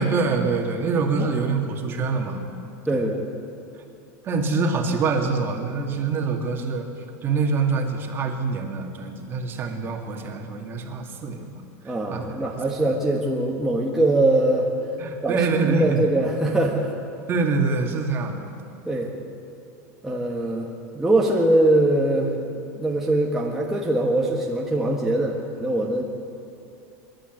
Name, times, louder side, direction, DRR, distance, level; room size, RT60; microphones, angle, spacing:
voice 1, 0.0-2.4 2.9-3.0 4.2-6.9 7.2-12.4 15.0-16.0 17.3-18.6, right 4 dB, 25° right, 3 dB, 2.2 m, -25 dB
voice 2, 2.9-3.2 11.8-14.7 15.2-15.4 15.6-16.9 18.9-19.1 20.0-20.7 20.9-22.3 22.8-26.0, right 1 dB, 5° right, -3 dB, 1.5 m, -22 dB
24.5 x 11.5 x 9.3 m, 2.7 s
supercardioid pair, 160°, 8 cm